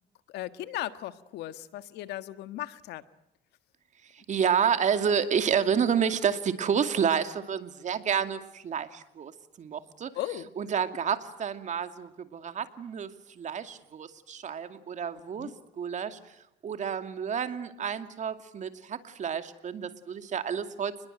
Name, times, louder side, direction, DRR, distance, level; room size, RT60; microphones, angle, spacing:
voice 1, 0.3-3.0 10.1-10.5 15.4-15.5, left 14 dB, 80° left, 12 dB, 1.6 m, -37 dB
voice 2, 4.1-9.3 9.6-10.1 10.6-13.1 13.4-15.5 15.8-16.4 16.6-20.9, right 7 dB, 45° right, 9 dB, 2.5 m, -29 dB
29.5 x 21.0 x 9.2 m, 0.83 s
cardioid pair, 110°, 17 cm